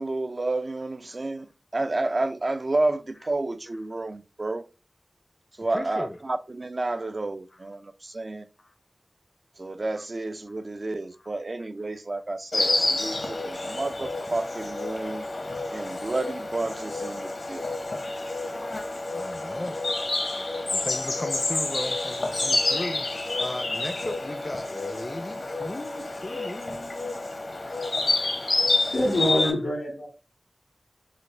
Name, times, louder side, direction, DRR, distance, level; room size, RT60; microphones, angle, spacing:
voice 1, 0.0-1.5 1.7-4.7 5.6-8.5 9.6-15.3 15.7-17.6, right 2 dB, 50° right, 0.4 m, -30 dB
voice 2, 5.7-6.2 7.5-7.6 8.6-8.7 9.9-10.0 10.5-10.6 19.1-19.8 20.2-23.1 23.4-27.2 29.4-29.5, left 1 dB, 35° left, 0.5 m, -37 dB
Insect, 12.5-29.5, left 2 dB, 70° left, 0.9 m, -29 dB
voice 3, 28.9-30.1, left 1 dB, 90° left, 1.8 m, -25 dB
6.2 x 2.1 x 3.2 m
wide cardioid pair, 60°, 0 cm